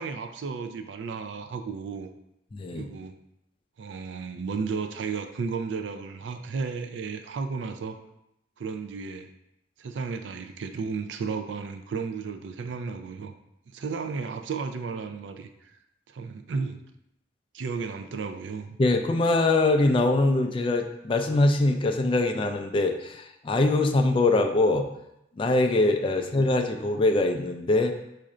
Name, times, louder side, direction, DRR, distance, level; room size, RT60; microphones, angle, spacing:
voice 1, 0.0-2.1 2.7-3.1 3.8-8.0 8.6-9.3 9.8-13.3 13.7-15.7 16.1-16.8 17.5-18.8, right 5 dB, 85° right, 7 dB, 0.4 m, -33 dB
voice 2, 2.5-2.9 18.8-24.9 25.4-27.9, left 2 dB, 30° left, 4 dB, 0.3 m, -23 dB
4.3 x 2.5 x 4.8 m, 0.82 s
head